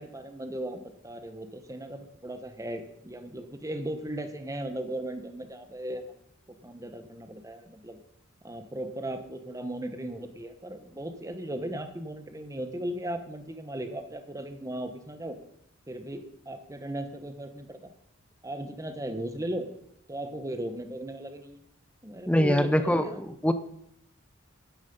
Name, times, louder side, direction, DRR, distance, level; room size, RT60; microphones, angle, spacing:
voice 1, 0.0-6.0 6.6-8.0 8.4-15.4 15.9-17.9 18.4-19.7 20.1-21.6 22.0-23.2, right 1 dB, 15° right, 8 dB, 1.1 m, -37 dB
voice 2, 22.3-23.5, equal, 5° left, 10 dB, 0.7 m, -24 dB
12.5 x 10.0 x 5.4 m, 0.73 s
head